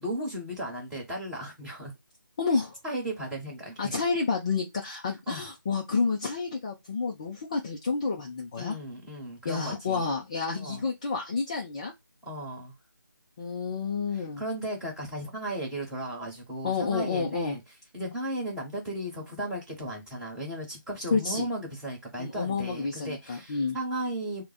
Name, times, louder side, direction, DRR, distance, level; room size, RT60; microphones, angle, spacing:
voice 1, 0.0-1.9 2.8-4.0 5.3-5.5 8.6-10.0 10.6-10.8 12.2-12.7 14.1-17.6 17.9-24.4, right 1 dB, 5° right, 1.3 m, -35 dB
voice 2, 2.4-2.8 3.8-8.8 9.4-11.9 13.4-14.4 16.6-17.6 21.1-21.4 22.2-23.8, left 4 dB, 20° left, 0.4 m, -29 dB
3.3 x 2.1 x 4.0 m
figure-of-eight pair, 160°, 11 cm